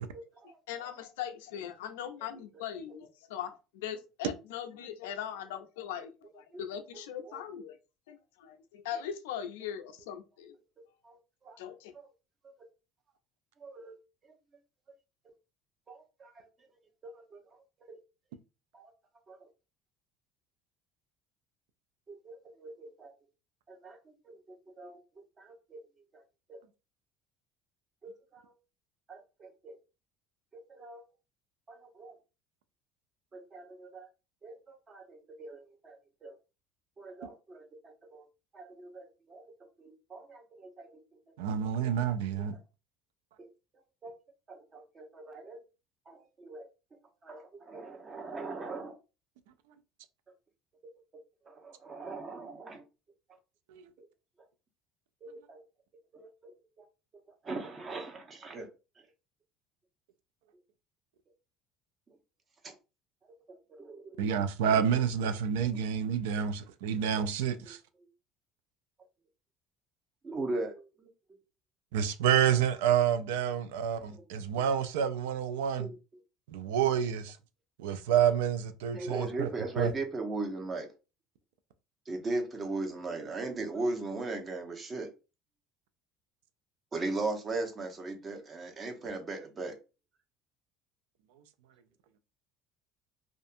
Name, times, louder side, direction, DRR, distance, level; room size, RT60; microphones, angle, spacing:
voice 1, 0.4-7.8 8.1-10.6 11.6-11.9, left 9 dB, 90° left, 0.4 m, -40 dB
voice 2, 13.6-14.0 15.9-16.5 17.0-17.6 17.9-18.0 18.7-18.9 19.3-19.4 22.1-23.1 23.7-24.0 24.2-25.0 25.4-25.8 26.5-26.6 28.0-28.5 29.1-29.8 30.5-31.0 31.7-32.1 33.3-34.1 34.4-36.3 37.0-38.2 38.5-39.4 39.8-40.9 41.8-41.9 43.4-43.5 44.0-44.1 44.5-45.6 46.1-46.7 47.2-49.0 51.5-52.8 54.0-54.1 55.2-55.6 56.1-56.5 56.8-56.9 57.4-58.7 62.6-62.7 63.5-64.3 67.7-67.8 70.2-71.1 74.1-74.2 75.8-75.9 78.9-80.9 82.1-85.1 86.9-89.7, right 3 dB, 35° right, 0.8 m, -39 dB
voice 3, 41.4-42.5 53.7-53.9 64.2-67.8 71.9-75.9 76.5-77.4 77.8-79.5 79.8-79.9, right 8 dB, 90° right, 0.3 m, -28 dB
2.5 x 2.4 x 2.5 m
supercardioid pair, 95°, 0 cm